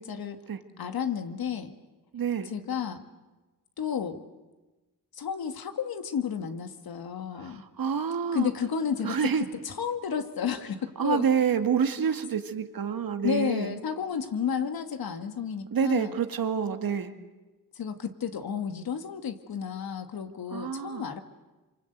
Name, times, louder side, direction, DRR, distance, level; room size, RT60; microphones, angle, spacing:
voice 1, 0.0-0.4 0.8-1.7 2.5-3.0 3.8-4.2 5.1-7.6 8.3-9.2 9.6-11.2 13.2-16.1 17.7-21.2, left 7 dB, 85° left, 7 dB, 1.9 m, -32 dB
voice 2, 2.1-2.5 7.4-8.5 9.0-9.5 11.0-13.8 15.7-17.1 20.5-21.0, right 7 dB, 75° right, 7 dB, 2.1 m, -28 dB
26.5 x 25.5 x 8.1 m, 1.2 s
cardioid pair, 45°, 35 cm